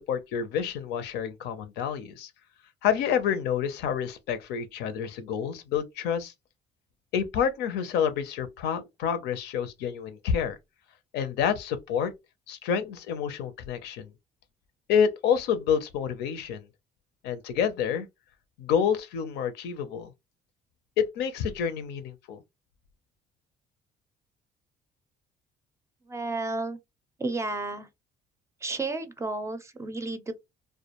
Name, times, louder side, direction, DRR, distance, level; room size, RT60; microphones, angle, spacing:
voice 1, 0.0-2.3 2.8-6.3 7.1-10.6 11.1-12.1 12.5-14.1 14.9-16.6 17.2-18.1 18.6-20.1 21.0-22.4, left 8 dB, 85° left, 0.5 m, -28 dB
voice 2, 26.1-26.8 27.2-27.9 28.6-30.3, right 2 dB, 15° right, 0.4 m, -32 dB
2.2 x 2.1 x 2.9 m
cardioid pair, 110°, 17 cm